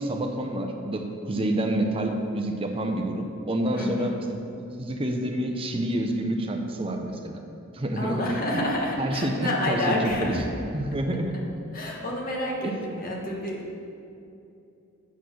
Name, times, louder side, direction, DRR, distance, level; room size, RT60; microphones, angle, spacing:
voice 1, 0.0-7.4 7.7-8.2 8.5-8.6 9.0-10.3 10.7-11.3 12.6-12.8, right 1 dB, 25° right, 4 dB, 0.6 m, -28 dB
voice 2, 3.7-4.2 8.0-10.4 11.7-13.8, left 1 dB, 40° left, -1 dB, 1.2 m, -29 dB
8.3 x 4.3 x 6.1 m, 2.6 s
head